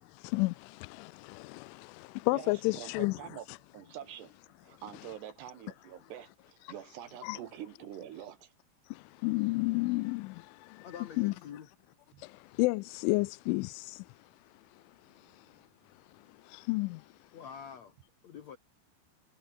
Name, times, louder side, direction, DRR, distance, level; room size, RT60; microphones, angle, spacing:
voice 1, 0.1-3.2 7.2-7.4 8.9-10.9 11.2-11.3 12.2-14.1 16.4-17.1, left 24 dB, 85° left, 2.9 m, -32 dB
voice 2, 2.3-3.5 3.7-4.4 4.6-8.5 12.1-12.2 15.3-15.4, right 10 dB, 65° right, 3.4 m, -46 dB
voice 3, 10.8-11.7 17.3-18.0 18.2-18.6, left 8 dB, 65° left, 1.7 m, -46 dB
omnidirectional pair, 5.8 m